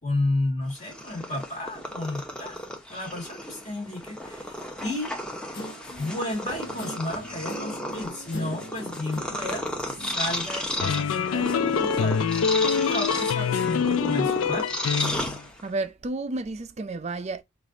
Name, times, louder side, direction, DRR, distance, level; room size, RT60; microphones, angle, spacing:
voice 1, 0.0-2.6 2.9-5.1 6.0-12.3 12.7-14.7, left 2 dB, 35° left, 1.5 m, -32 dB
Purr, 0.7-15.9, left 1 dB, 5° left, 0.8 m, -33 dB
Guitar, 5.5-11.3, equal, 60° left, 1.2 m, -42 dB
sound 1, 10.8-15.4, left 6 dB, 90° left, 0.4 m, -25 dB
voice 2, 15.6-17.4, right 2 dB, 35° right, 0.4 m, -31 dB
5.0 x 2.5 x 3.8 m
head